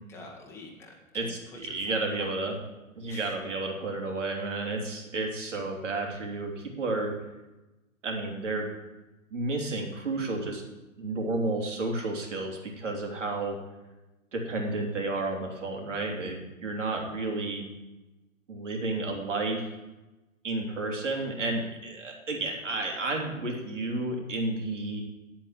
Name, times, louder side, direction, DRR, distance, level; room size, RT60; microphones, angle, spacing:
voice 1, 0.1-2.3 3.1-3.3, left 2 dB, 5° left, -1 dB, 1.4 m, -48 dB
voice 2, 1.1-2.5 3.0-7.1 8.0-8.7 9.3-10.6 11.0-13.6 14.3-17.6 18.5-19.8 20.4-25.0, right 2 dB, 60° right, 1 dB, 3.2 m, -31 dB
9.2 x 7.9 x 8.6 m, 1.1 s
figure-of-eight pair, 130°, 42 cm